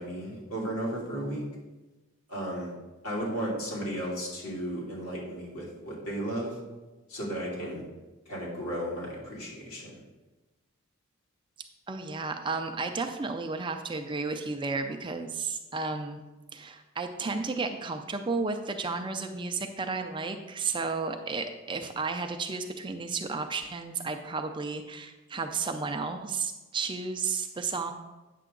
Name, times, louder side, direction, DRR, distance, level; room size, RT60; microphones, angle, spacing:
voice 1, 0.0-1.4 2.3-2.7 3.0-6.6 7.1-7.8 8.3-10.0, right 1 dB, 75° left, -4 dB, 2.8 m, -34 dB
voice 2, 11.9-16.2 16.5-27.9, right 4 dB, 20° right, 6 dB, 0.4 m, -33 dB
9.1 x 6.7 x 3.8 m, 1.1 s
head